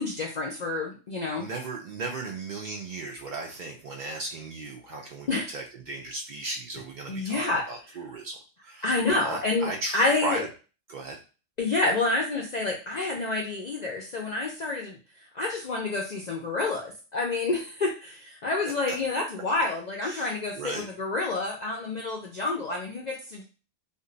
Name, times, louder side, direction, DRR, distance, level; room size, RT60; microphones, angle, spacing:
voice 1, 0.0-1.5 5.3-5.5 7.1-7.7 8.8-10.4 11.6-15.0 15.3-23.4, left 3 dB, 65° left, -1 dB, 0.4 m, -28 dB
voice 2, 1.4-10.5 10.9-11.2 20.0-20.9, right 3 dB, 80° right, 1 dB, 0.4 m, -36 dB
2.6 x 2.2 x 3.8 m, 0.34 s
omnidirectional pair, 1.3 m